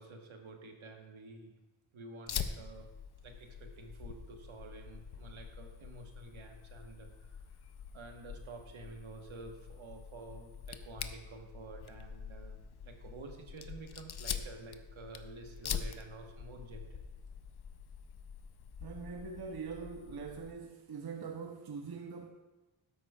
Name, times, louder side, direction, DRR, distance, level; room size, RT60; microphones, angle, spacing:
voice 1, 0.0-1.5 1.9-2.9 3.2-7.4 7.9-17.0, right 3 dB, 70° right, 1.4 m, -50 dB
Fire, 2.3-20.5, left 7 dB, 50° left, 0.6 m, -45 dB
voice 2, 18.8-22.3, right 5 dB, 50° right, 0.7 m, -43 dB
13.0 x 10.0 x 2.3 m
wide cardioid pair, 145°, 50 cm